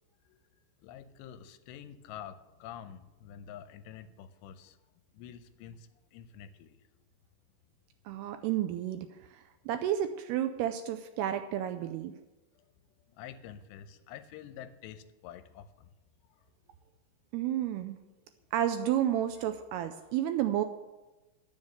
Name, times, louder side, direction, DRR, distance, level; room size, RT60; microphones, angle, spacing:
voice 1, 0.8-4.8 5.1-6.8 12.6-12.8 13.1-15.9, left 9 dB, 85° left, 11 dB, 2.8 m, -48 dB
voice 2, 8.1-9.0 9.3-12.1 17.3-18.0 18.5-20.6, right 11 dB, 85° right, 8 dB, 2.4 m, -31 dB
11.0 x 7.2 x 7.9 m, 1.1 s
omnidirectional pair, 5.1 m